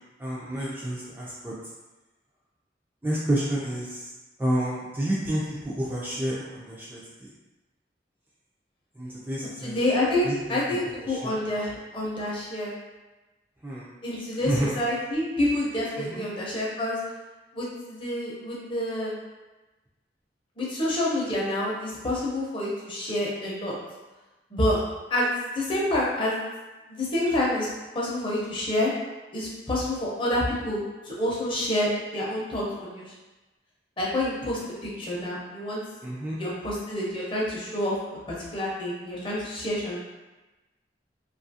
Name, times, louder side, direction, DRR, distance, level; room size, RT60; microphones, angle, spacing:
voice 1, 0.2-1.5 3.0-4.1 4.4-7.3 9.0-9.8 10.2-10.6 11.0-11.3 13.6-13.9 14.4-14.7 16.0-16.2 36.0-36.4, right 1 dB, 10° right, -7 dB, 0.3 m, -30 dB
voice 2, 9.6-12.7 14.0-17.0 17.5-19.1 20.6-23.8 24.5-24.8 25.1-26.4 26.9-27.7 27.9-28.9 29.3-33.1 34.0-35.8 36.4-38.0 38.3-40.0, left 1 dB, 30° left, -5 dB, 0.6 m, -28 dB
2.7 x 2.4 x 2.6 m, 1.1 s
head